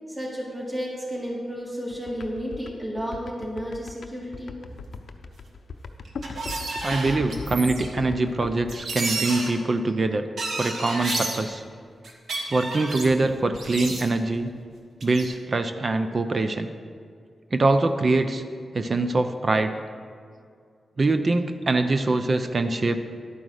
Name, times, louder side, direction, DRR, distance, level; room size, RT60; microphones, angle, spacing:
voice 1, 0.1-4.5, equal, 20° right, -3 dB, 2.3 m, -32 dB
sound 1, 1.9-8.6, left 4 dB, 70° left, 0.6 m, -38 dB
sound 2, 5.3-5.4 6.0-7.9 8.3-8.4 8.6-9.5 10.4-11.4 12.0-13.1 13.5-14.4 15.0-15.3, right 2 dB, 75° right, 1.4 m, -31 dB
voice 2, 6.8-10.3 10.6-11.6 12.5-14.5 15.0-16.7 17.5-18.4 18.7-19.8 21.0-23.0, right 2 dB, 50° right, 8 dB, 0.5 m, -23 dB
11.0 x 5.0 x 6.4 m, 2.2 s
cardioid pair, 60°, 0 cm